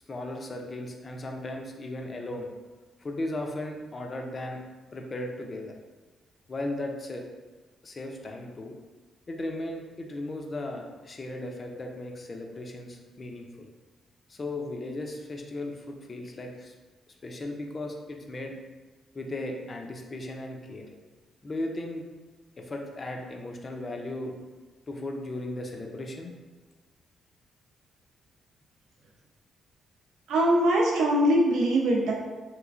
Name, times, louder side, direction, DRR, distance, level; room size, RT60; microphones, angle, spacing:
voice 1, 0.1-2.5 3.0-4.6 4.9-5.7 6.5-7.2 7.8-8.7 9.3-13.7 14.3-16.7 17.2-18.5 19.1-20.9 21.4-22.0 22.6-24.3 24.9-26.3, left 1 dB, 30° left, 2 dB, 0.4 m, -36 dB
voice 2, 30.3-32.1, right 1 dB, 80° right, -1 dB, 0.6 m, -22 dB
3.2 x 3.0 x 2.4 m, 1.3 s
cardioid pair, 145°, 0 cm